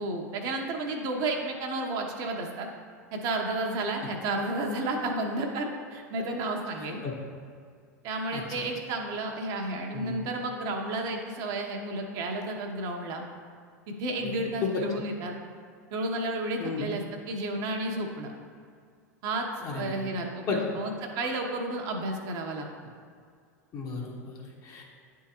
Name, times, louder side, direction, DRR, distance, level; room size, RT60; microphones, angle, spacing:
voice 1, 0.0-2.7 3.1-7.0 8.0-13.2 14.0-15.3 15.9-18.3 19.2-19.5 19.7-22.7, right 2 dB, 50° right, 2 dB, 0.9 m, -32 dB
voice 2, 6.8-7.1 8.3-8.7 9.9-10.3 14.2-14.8 16.6-16.8 19.6-20.1 20.5-20.6 23.7-24.8, left 5 dB, 40° left, -1 dB, 1.3 m, -34 dB
9.5 x 3.7 x 2.9 m, 2.1 s
hypercardioid pair, 90°, 9 cm